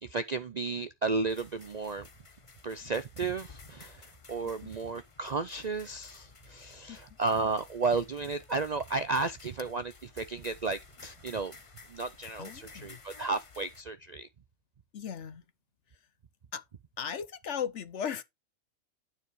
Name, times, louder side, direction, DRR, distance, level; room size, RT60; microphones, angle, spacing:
voice 1, 0.0-2.1 2.6-11.6 11.9-14.3, right 3 dB, 80° right, 0.3 m, -33 dB
sound 1, 1.3-13.8, left 4 dB, 25° left, 0.8 m, -54 dB
voice 2, 12.4-13.0 14.9-15.4 16.5-16.6 17.0-18.2, left 8 dB, 60° left, 1.0 m, -37 dB
9.5 x 5.0 x 4.7 m
omnidirectional pair, 1.5 m